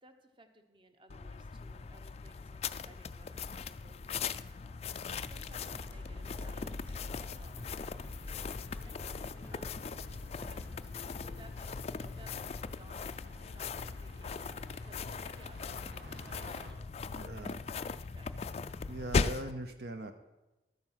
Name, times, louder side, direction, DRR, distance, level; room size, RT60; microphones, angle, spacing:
voice 1, 0.0-9.0 9.5-9.9 10.5-10.8 11.1-13.0 13.5-16.8 17.3-18.6, right 1 dB, 25° right, 7 dB, 1.0 m, -60 dB
sound 1, 1.1-19.5, left 5 dB, 35° left, 0.3 m, -39 dB
sound 2, 5.2-10.9, left 1 dB, 10° left, 0.8 m, -51 dB
sound 3, 5.5-16.7, equal, 80° right, 2.4 m, -56 dB
voice 2, 17.2-17.6 18.8-20.1, right 1 dB, 60° right, 7 dB, 0.7 m, -41 dB
12.5 x 9.4 x 5.7 m, 1.0 s
head